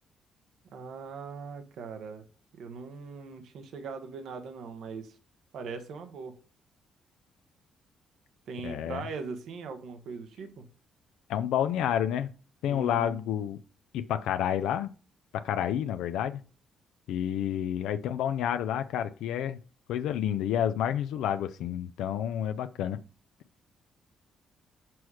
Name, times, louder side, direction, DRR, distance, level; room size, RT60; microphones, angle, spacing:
voice 1, 0.7-2.2 2.6-5.2 5.5-6.3 8.5-10.7 12.7-13.2, right 5 dB, 75° right, 7 dB, 1.0 m, -40 dB
voice 2, 8.6-9.0 11.3-12.3 12.6-13.6 13.9-14.9 15.3-16.4 17.1-19.6 19.9-23.0, left 10 dB, 85° left, 10 dB, 0.4 m, -29 dB
6.1 x 4.8 x 4.8 m, 0.37 s
cardioid pair, 90°, 0 cm